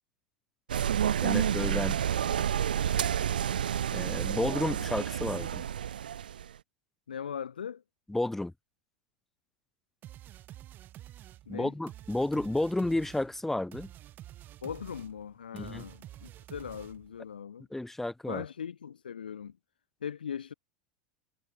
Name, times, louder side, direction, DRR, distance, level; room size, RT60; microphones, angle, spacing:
sound 1, 0.7-6.5, right 9 dB, 75° right, 0.7 m, -29 dB
voice 1, 1.2-2.0 3.9-5.6 8.1-8.5 11.5-13.9 15.5-15.8 17.7-18.4, left 2 dB, 5° left, 0.5 m, -31 dB
voice 2, 7.1-7.8 11.5-11.7 14.6-17.7 18.3-19.6 20.0-20.5, left 7 dB, 80° left, 0.4 m, -39 dB
sound 2, 10.0-17.2, right 13 dB, 40° right, 6.3 m, -49 dB
figure-of-eight pair, 85°, 5 cm